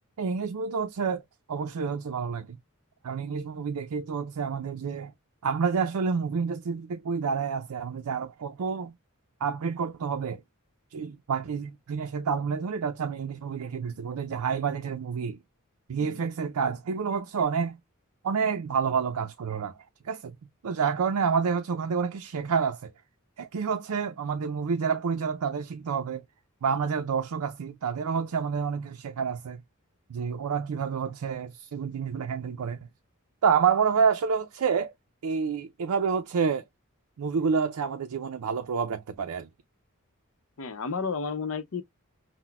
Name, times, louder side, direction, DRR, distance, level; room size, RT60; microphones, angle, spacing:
voice 1, 0.2-1.2 1.5-2.6 3.0-5.1 5.4-8.9 9.4-10.4 10.9-15.4 15.9-17.8 18.2-19.8 20.0-20.3 20.6-22.9 23.4-26.2 26.6-29.6 30.1-32.9 33.4-34.9 35.2-36.6 37.2-39.5, right 6 dB, 85° right, 0.4 m, -28 dB
voice 2, 40.6-41.8, left 5 dB, 65° left, 0.7 m, -32 dB
5.8 x 2.1 x 2.2 m
head